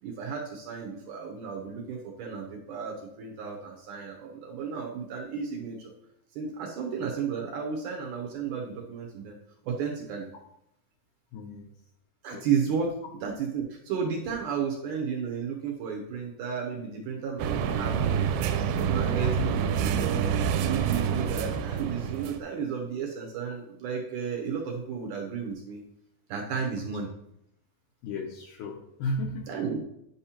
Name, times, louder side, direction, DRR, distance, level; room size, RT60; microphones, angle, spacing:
voice 1, 0.0-5.9 6.3-9.4 9.6-10.3 12.2-12.9 13.2-18.3 18.7-20.3 20.6-25.8 26.3-27.1 29.5-29.8, right 6 dB, 70° right, 0 dB, 2.0 m, -33 dB
voice 2, 11.3-11.7 12.3-12.5 19.2-19.3 26.5-26.6 28.0-29.5, left 2 dB, 80° left, 2 dB, 1.9 m, -34 dB
sound 1, 17.4-22.4, right 8 dB, 90° right, 2.5 m, -27 dB
10.5 x 5.3 x 2.9 m, 0.77 s
omnidirectional pair, 4.3 m